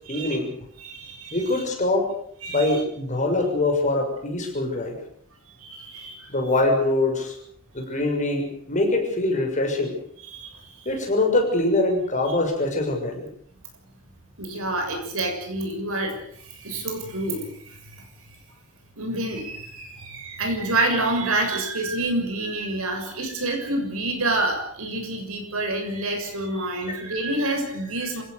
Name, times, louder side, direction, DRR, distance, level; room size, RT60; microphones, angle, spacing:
voice 1, 0.1-0.6 1.3-2.1 2.5-5.0 6.3-7.3 7.7-10.0 10.8-13.3 26.9-27.0, left 2 dB, 35° left, 2 dB, 6.5 m, -23 dB
voice 2, 0.8-1.6 2.4-2.8 5.6-6.3 10.2-10.9 14.4-16.2 16.4-18.0 19.0-28.2, right 2 dB, 70° right, 4 dB, 6.8 m, -28 dB
27.0 x 17.0 x 6.9 m, 0.65 s
head